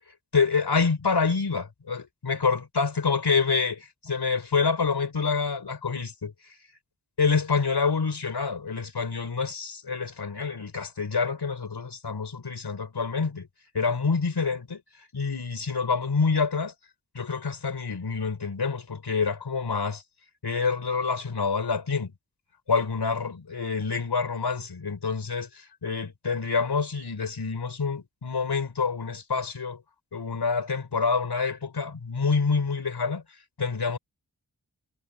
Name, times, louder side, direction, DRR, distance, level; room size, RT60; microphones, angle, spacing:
voice 1, 0.3-6.3 7.2-13.5 13.7-14.8 15.1-16.7 17.1-20.0 20.4-22.1 22.7-29.8 30.1-33.2 33.6-34.0, left 5 dB, 80° left, 5.1 m, -27 dB
wide cardioid pair, 60°, 39 cm